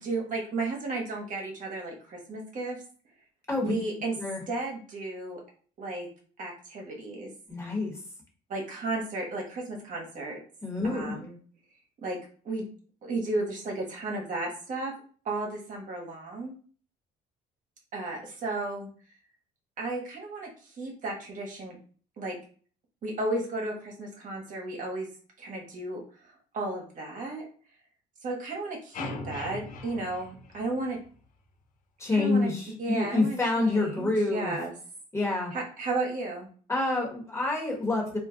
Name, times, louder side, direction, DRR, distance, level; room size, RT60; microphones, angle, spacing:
voice 1, 0.0-2.8 3.6-4.1 4.5-5.4 5.8-6.1 6.4-7.3 8.5-10.4 10.8-11.4 12.0-12.2 12.4-12.7 13.0-14.9 15.2-16.5 17.9-18.9 19.8-21.8 22.2-22.4 23.0-25.1 25.4-27.4 28.2-31.0 32.1-32.5 32.8-34.7 35.5-36.5, right 2 dB, 50° right, 0 dB, 1.0 m, -34 dB
voice 2, 7.5-7.9 10.6-11.2 32.0-34.5 35.1-35.5 36.7-38.2, left 2 dB, 15° left, -1 dB, 1.2 m, -27 dB
sound 1, 28.9-31.2, left 3 dB, 50° left, 0.6 m, -40 dB
2.4 x 2.2 x 3.7 m, 0.43 s
cardioid pair, 110°, 17 cm